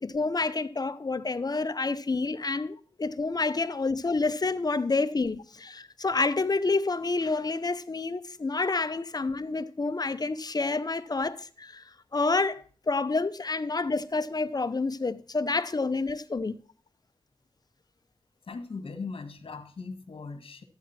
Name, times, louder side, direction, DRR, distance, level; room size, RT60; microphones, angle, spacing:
voice 1, 0.0-11.8 12.1-16.6, left 3 dB, 45° left, 0.8 m, -28 dB
voice 2, 18.5-20.6, left 4 dB, 75° left, 1.6 m, -39 dB
12.0 x 8.6 x 4.3 m
cardioid pair, 55°, 9 cm